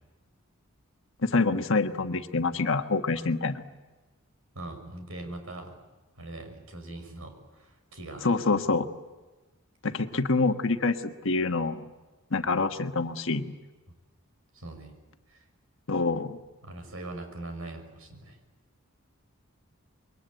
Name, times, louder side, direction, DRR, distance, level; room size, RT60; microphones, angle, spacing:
voice 1, 1.2-3.6 8.2-8.9 9.8-11.8 12.3-13.5 15.9-16.4, left 3 dB, 60° left, 7 dB, 1.4 m, -26 dB
voice 2, 4.5-5.8 6.2-8.3 14.5-14.9 15.3-15.4 16.6-18.4, right 2 dB, 70° right, 6 dB, 6.3 m, -41 dB
27.5 x 23.0 x 9.2 m, 1.2 s
head